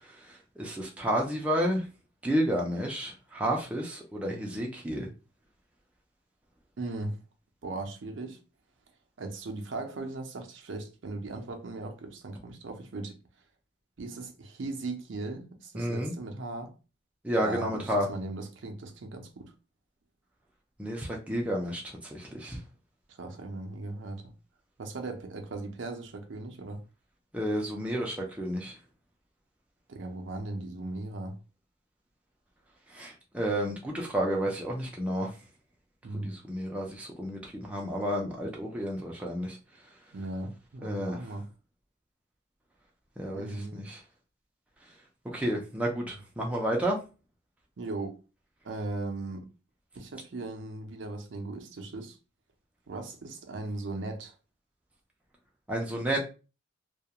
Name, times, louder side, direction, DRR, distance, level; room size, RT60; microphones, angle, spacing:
voice 1, 0.6-1.8 2.2-5.1 15.7-16.1 17.2-18.1 20.8-21.8 22.1-22.6 27.3-28.7 32.9-35.3 36.2-39.6 40.8-41.2 43.2-44.0 45.3-47.0 55.7-56.2, equal, 5° right, 0.4 m, -31 dB
voice 2, 6.8-7.2 7.6-8.4 9.2-13.2 14.0-16.7 17.4-19.5 23.2-24.3 24.8-26.8 29.9-31.4 36.0-36.3 40.1-41.5 43.3-43.9 47.8-48.2 48.6-49.5 50.0-52.2 52.9-54.3, right 2 dB, 65° right, 0.5 m, -38 dB
2.3 x 2.1 x 2.8 m
head